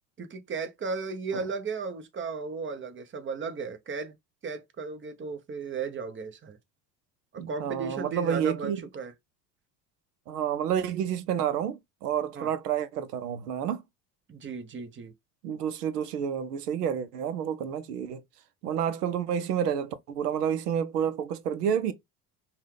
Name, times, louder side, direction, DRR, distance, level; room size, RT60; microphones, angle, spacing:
voice 1, 0.2-4.2 4.4-6.6 7.3-9.1 12.3-12.5 14.3-15.1, right 4 dB, 25° right, 0.9 m, -35 dB
voice 2, 7.4-8.8 10.3-13.8 15.4-18.2 18.6-21.9, right 8 dB, 85° right, 0.7 m, -29 dB
5.2 x 2.4 x 3.3 m
hypercardioid pair, 70°, 46 cm